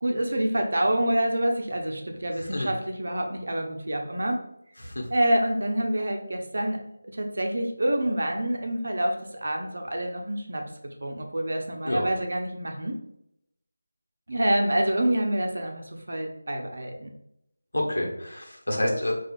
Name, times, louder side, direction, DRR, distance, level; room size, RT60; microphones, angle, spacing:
voice 1, 0.0-4.4 5.1-6.8 7.1-10.6 11.0-12.9 14.3-17.1, right 1 dB, 60° right, 3 dB, 0.6 m, -27 dB
voice 2, 2.4-2.7 4.8-5.1 11.8-12.1 17.7-19.1, left 1 dB, 70° left, 0 dB, 1.0 m, -28 dB
4.4 x 2.4 x 2.5 m, 0.77 s
figure-of-eight pair, 165°, 0 cm